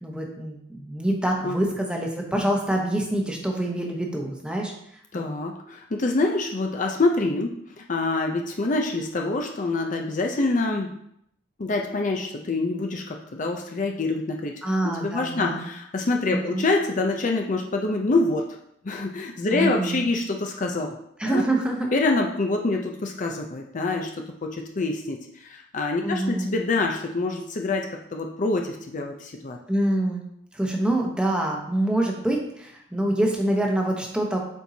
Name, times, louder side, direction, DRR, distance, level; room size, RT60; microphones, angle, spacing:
voice 1, 0.0-4.7 14.6-15.6 16.3-16.6 19.5-20.0 21.2-21.9 26.0-26.5 29.7-30.2 30.5-34.4, right 1 dB, 5° right, 0 dB, 0.9 m, -25 dB
voice 2, 5.1-10.9 11.6-14.5 14.8-18.5 18.8-21.0 21.2-21.4 21.9-27.9 28.1-29.6, left 2 dB, 40° left, 2 dB, 0.6 m, -26 dB
8.0 x 4.5 x 2.8 m, 0.74 s
head